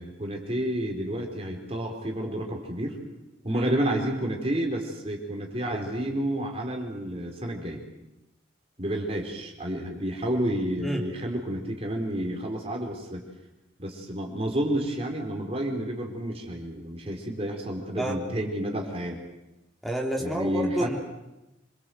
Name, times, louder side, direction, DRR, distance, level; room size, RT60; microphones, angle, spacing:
voice 1, 0.0-3.0 3.4-7.8 8.8-13.2 13.8-19.2 20.2-20.9, right 1 dB, 30° right, 2 dB, 4.4 m, -30 dB
voice 2, 19.8-21.0, right 1 dB, ahead, 0 dB, 3.8 m, -29 dB
27.0 x 22.5 x 8.0 m, 0.95 s
head